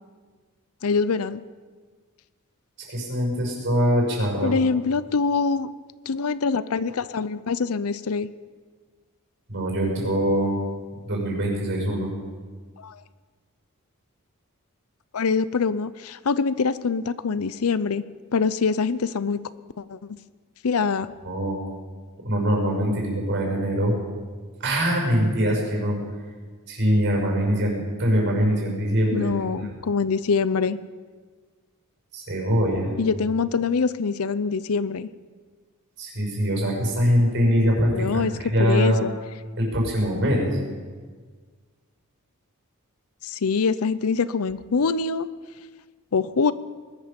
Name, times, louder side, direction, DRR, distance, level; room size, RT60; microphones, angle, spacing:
voice 1, 0.8-1.4 4.4-5.7 6.1-8.3 12.8-13.0 15.1-18.0 18.3-19.4 19.8-20.2 20.6-21.1 29.1-30.8 33.0-35.1 37.9-38.3 38.6-39.1 43.2-45.3 46.1-46.5, left 5 dB, 75° left, 16 dB, 0.6 m, -24 dB
voice 2, 2.9-4.5 9.5-10.6 11.0-12.1 21.2-21.6 22.2-23.9 24.6-26.0 26.7-29.3 32.1-32.9 36.0-39.0 39.6-40.6, equal, 55° right, -1 dB, 6.1 m, -23 dB
20.5 x 13.0 x 5.3 m, 1.5 s
head